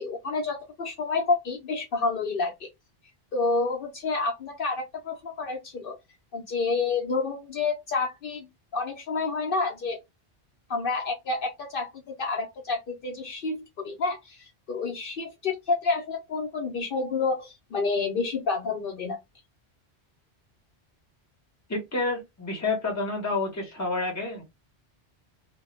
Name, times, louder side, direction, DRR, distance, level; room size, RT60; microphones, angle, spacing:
voice 1, 0.0-2.7 3.3-6.0 6.3-8.5 8.7-10.0 10.7-11.9 12.2-19.2, left 4 dB, 60° left, 0.7 m, -29 dB
voice 2, 21.7-24.4, left 3 dB, 20° left, 0.7 m, -29 dB
2.2 x 2.1 x 3.0 m
omnidirectional pair, 1.1 m